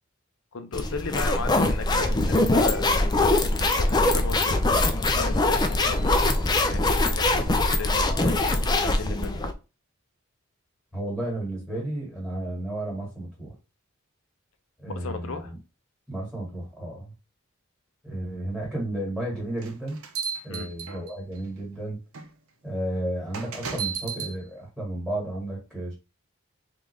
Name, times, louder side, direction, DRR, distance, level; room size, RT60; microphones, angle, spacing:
voice 1, 0.5-2.9 3.6-4.6 5.1-6.4 6.7-9.5 14.9-15.5 20.5-20.7, left 4 dB, 70° left, 8 dB, 0.6 m, -35 dB
sound 1, 0.7-9.5, left 2 dB, 20° left, 0.3 m, -23 dB
voice 2, 10.9-13.5 14.8-15.6 16.1-17.1 18.0-20.0 20.4-22.0 22.6-25.9, right 1 dB, ahead, -4 dB, 1.5 m, -32 dB
sound 2, 19.6-21.4 22.1-22.3 23.3-24.3, right 6 dB, 85° right, 0.6 m, -34 dB
3.5 x 2.5 x 3.1 m, 0.29 s
head